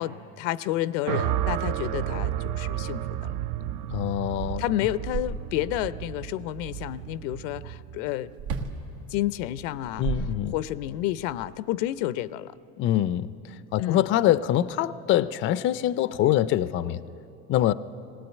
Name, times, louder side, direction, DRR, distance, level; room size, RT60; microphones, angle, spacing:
voice 1, 0.0-3.3 4.6-8.3 9.1-10.1 10.5-12.5 13.8-14.1, left 14 dB, 85° left, 16 dB, 0.6 m, -30 dB
sound 1, 1.0-9.3, right 11 dB, 60° right, 0.6 m, -32 dB
voice 2, 3.9-4.6 10.0-10.5 12.8-17.0 17.5-17.7, left 12 dB, 35° left, 15 dB, 0.4 m, -24 dB
sound 2, 3.9-4.0 4.3-5.8 8.4-8.8 9.7-10.9, right 6 dB, 85° right, 1.7 m, -33 dB
19.0 x 18.5 x 9.0 m, 2.9 s
cardioid pair, 140°, 35 cm